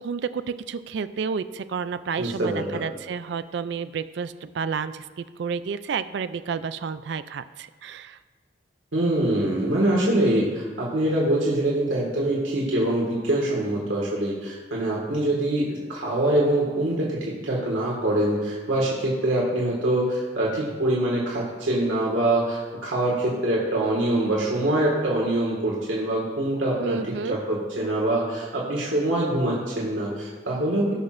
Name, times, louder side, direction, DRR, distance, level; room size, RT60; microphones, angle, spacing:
voice 1, 0.0-8.2 26.8-27.4, right 6 dB, 60° right, 13 dB, 0.3 m, -31 dB
voice 2, 2.2-2.8 8.9-27.0 27.3-30.9, right 1 dB, 90° right, -4 dB, 1.9 m, -24 dB
17.0 x 6.0 x 2.6 m, 1.5 s
head